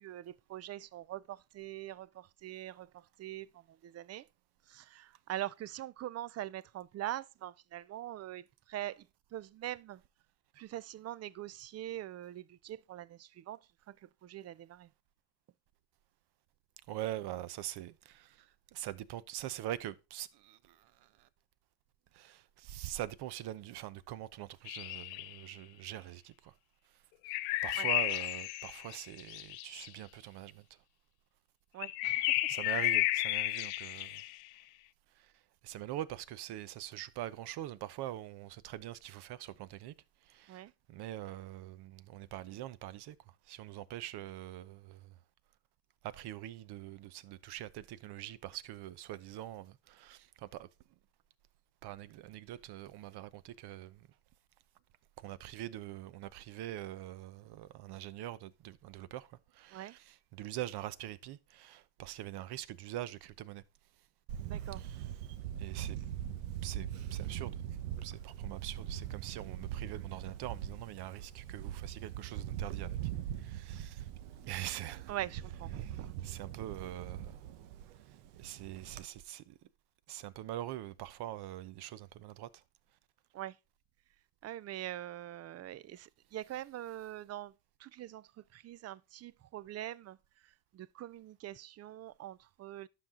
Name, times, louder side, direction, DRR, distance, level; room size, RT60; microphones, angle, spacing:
voice 1, 0.0-4.3 4.7-10.0 10.5-14.9 27.8-27.9 31.7-32.6 40.5-40.7 59.7-60.0 64.5-64.8 75.1-76.6 83.3-83.6 84.4-87.5 87.8-90.2 90.4-92.9, right 13 dB, 35° right, 0.5 m, -43 dB
voice 2, 16.9-21.3 22.1-26.5 27.6-30.6 32.5-34.2 35.2-35.3 35.6-39.9 40.3-40.6 40.9-43.2 43.5-45.1 46.0-50.7 51.8-54.1 55.2-63.6 64.8-65.1 65.6-66.0 66.6-67.6 68.0-73.0 73.4-74.1 74.5-75.1 75.7-77.4 78.4-79.6 80.1-82.6, right 13 dB, 60° right, 0.8 m, -43 dB
sound 1, 24.7-25.4 27.2-29.9 31.8-34.5, left 18 dB, 85° left, 0.6 m, -33 dB
Camera, 64.3-79.0, right 11 dB, 85° right, 1.0 m, -41 dB
11.5 x 5.8 x 3.7 m
supercardioid pair, 100°, 44 cm